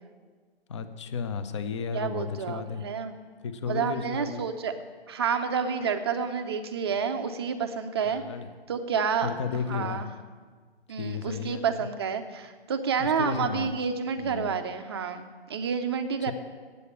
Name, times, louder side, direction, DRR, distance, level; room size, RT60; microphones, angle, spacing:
voice 1, 0.7-2.8 3.4-4.4 8.0-8.5 9.2-10.0 11.0-11.7 13.0-13.7 14.2-14.6 16.2-16.3, left 6 dB, 30° left, 11 dB, 0.5 m, -33 dB
voice 2, 1.9-3.1 3.7-4.7 5.1-8.2 8.7-9.3 9.7-10.1 10.9-16.3, right 6 dB, 25° right, 8 dB, 0.5 m, -29 dB
8.3 x 8.0 x 8.3 m, 1.5 s
figure-of-eight pair, 140°, 32 cm